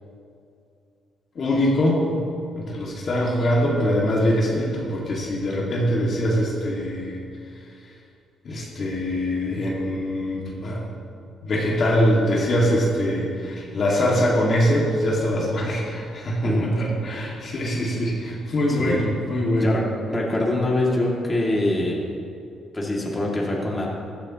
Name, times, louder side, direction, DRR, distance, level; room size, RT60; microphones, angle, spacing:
voice 1, 1.4-2.2 2.5-7.2 8.4-10.9 11.4-19.8, equal, 50° left, -4 dB, 2.3 m, -23 dB
voice 2, 19.6-22.0 22.7-24.0, left 1 dB, 20° left, -4 dB, 2.6 m, -24 dB
16.0 x 11.5 x 3.1 m, 2.5 s
cardioid pair, 90°, 0 cm